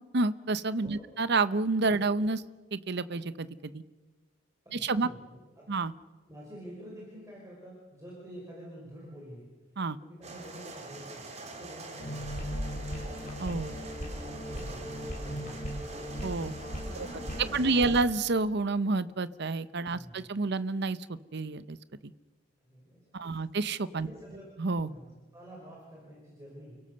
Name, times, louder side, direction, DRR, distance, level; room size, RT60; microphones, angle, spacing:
voice 1, 0.1-2.4 2.7-3.8 4.7-5.1 5.7-5.9 9.8-10.0 13.4-13.8 16.2-16.5 16.9-17.1 17.5-21.8 22.0-22.1 23.1-24.1 24.6-24.9, right 3 dB, 60° right, 15 dB, 0.8 m, -29 dB
voice 2, 4.7-5.7 6.3-9.5 10.0-11.2 11.6-12.5 14.1-15.8 16.8-18.0 19.9-20.2 22.6-23.2 23.9-24.5 24.9-26.8, equal, 15° right, -4 dB, 5.7 m, -48 dB
sound 1, 10.2-18.0, right 3 dB, 35° right, 3.3 m, -45 dB
sound 2, 12.0-17.9, equal, 40° left, 5.0 m, -37 dB
29.5 x 17.5 x 6.8 m, 1.3 s
head